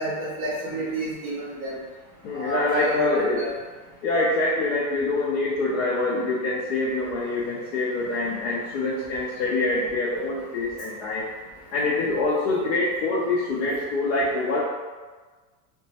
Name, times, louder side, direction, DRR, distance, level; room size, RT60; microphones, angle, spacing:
voice 1, 0.0-1.8 2.3-3.5, right 1 dB, 15° right, -11 dB, 0.4 m, -29 dB
voice 2, 2.2-3.5 4.0-11.3 11.7-14.6, left 2 dB, 60° left, -6 dB, 0.5 m, -25 dB
2.9 x 2.2 x 2.7 m, 1.4 s
supercardioid pair, 180°, 43 cm